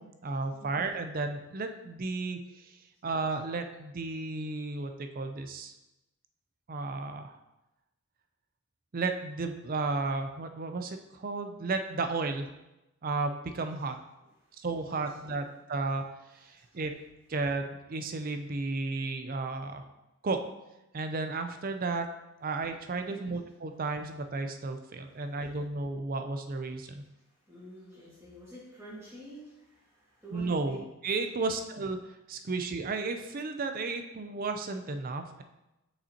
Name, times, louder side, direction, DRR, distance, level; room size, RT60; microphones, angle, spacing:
voice 1, 0.0-2.7 3.0-5.7 6.7-7.4 8.9-12.5 13.0-14.0 14.6-16.0 16.4-17.0 17.3-19.9 20.2-20.4 20.9-22.1 22.4-27.0 30.3-32.0 32.3-35.4, right 3 dB, 40° right, 7 dB, 0.5 m, -33 dB
voice 2, 0.5-0.8 14.4-15.5 16.3-16.8 23.0-23.3 25.0-25.6 27.0-30.8 31.3-31.6 32.4-32.5, right 1 dB, 10° right, -9 dB, 1.9 m, -50 dB
7.0 x 5.5 x 2.8 m, 0.95 s
head